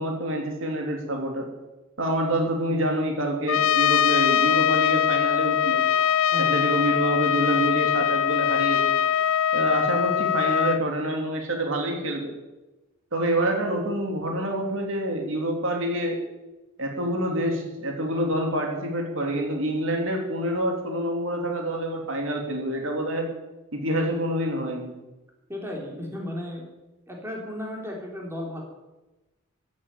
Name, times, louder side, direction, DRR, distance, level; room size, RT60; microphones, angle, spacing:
voice 1, 0.0-1.5 2.0-5.8 6.4-8.9 9.5-12.3 13.1-16.2 16.8-23.3 23.7-24.9, right 1 dB, 65° right, 2 dB, 3.1 m, -27 dB
Trumpet, 3.5-10.8, left 9 dB, 65° left, 0.4 m, -22 dB
voice 2, 6.3-6.9 25.5-26.6 27.1-28.6, left 1 dB, 10° right, -1 dB, 3.4 m, -34 dB
15.5 x 8.5 x 9.0 m, 1.1 s
head